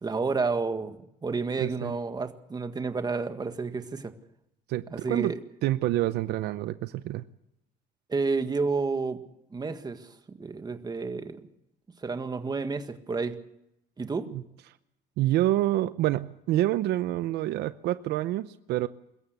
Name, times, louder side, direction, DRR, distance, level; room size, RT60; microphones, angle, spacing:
voice 1, 0.0-4.1 4.9-5.4 8.1-9.2 9.5-11.5 12.0-13.4 14.0-14.3, right 4 dB, 25° right, 8 dB, 1.7 m, -30 dB
voice 2, 1.6-1.9 4.7-5.3 5.6-7.2 15.2-18.9, right 15 dB, 80° right, 14 dB, 0.7 m, -27 dB
22.5 x 14.5 x 8.1 m, 0.82 s
cardioid pair, 110°, 17 cm